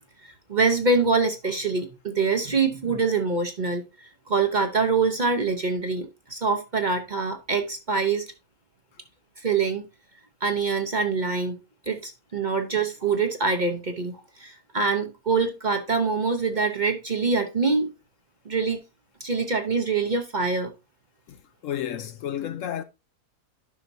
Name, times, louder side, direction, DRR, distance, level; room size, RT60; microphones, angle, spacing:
voice 1, 0.2-3.8 4.3-8.3 9.4-9.8 10.4-11.6 11.9-17.9 18.4-18.8 19.2-20.7, right 4 dB, 40° right, 0.8 m, -25 dB
voice 2, 21.3-22.8, left 10 dB, 70° left, 0.9 m, -32 dB
11.0 x 5.7 x 2.7 m
omnidirectional pair, 1.6 m